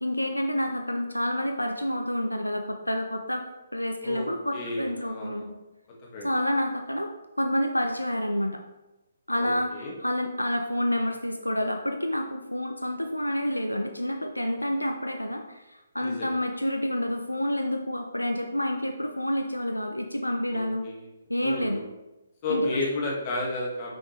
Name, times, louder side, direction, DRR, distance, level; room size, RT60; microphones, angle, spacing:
voice 1, 0.0-3.4 3.7-5.6 6.2-7.1 7.4-8.6 9.3-20.9 21.3-21.8 22.5-22.8, equal, 85° left, 5 dB, 0.6 m, -28 dB
voice 2, 4.0-5.5 6.1-6.3 9.4-9.9 16.0-16.3 20.5-21.1 21.4-21.9 22.4-24.0, left 2 dB, 30° left, -3 dB, 1.9 m, -32 dB
6.2 x 6.2 x 3.2 m, 1.0 s
figure-of-eight pair, 135°, 0 cm